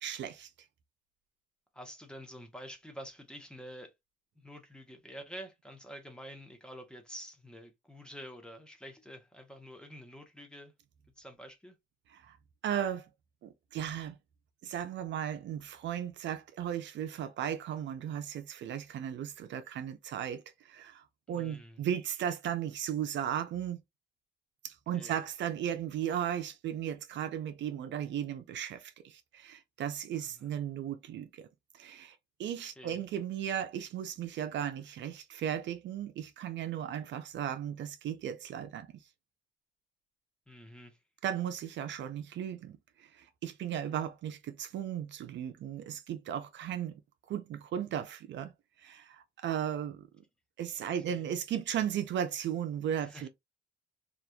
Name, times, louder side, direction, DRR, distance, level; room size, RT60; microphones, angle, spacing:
voice 1, 0.0-0.5 12.1-12.4 12.6-13.1 13.4-14.2 14.6-23.8 24.6-31.5 31.7-38.9 41.2-47.0 47.3-48.5 48.8-50.1 50.6-53.3, right 9 dB, 65° right, 0.5 m, -36 dB
voice 2, 1.7-3.9 4.4-10.7 11.2-11.8 21.3-21.8 24.9-25.2 30.2-30.5 32.8-33.0 40.5-41.0 51.1-51.3 53.0-53.3, equal, 5° left, 0.8 m, -48 dB
2.9 x 2.4 x 2.2 m
cardioid pair, 90°, 20 cm